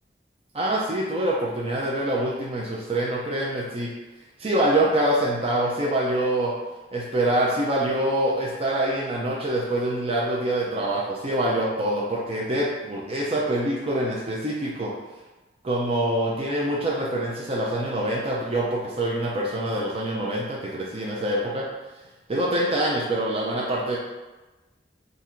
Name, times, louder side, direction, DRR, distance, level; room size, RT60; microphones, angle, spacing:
voice 1, 0.5-3.9 4.4-6.5 6.9-14.9 15.6-21.6 22.3-24.0, right 1 dB, 35° right, -4 dB, 0.6 m, -25 dB
3.8 x 2.7 x 4.3 m, 1.1 s
head